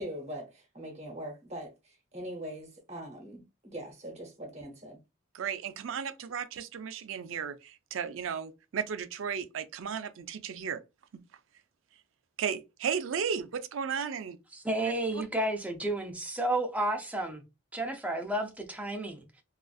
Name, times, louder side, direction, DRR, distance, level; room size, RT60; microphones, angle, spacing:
voice 1, 0.0-5.0, right 1 dB, 30° right, 0.9 m, -42 dB
voice 2, 5.3-10.8 11.1-11.2 12.4-14.4 14.8-14.9, right 7 dB, 70° right, 0.4 m, -34 dB
voice 3, 14.5-17.4 17.7-19.4, right 1 dB, 5° right, 0.5 m, -32 dB
2.5 x 2.4 x 2.3 m
head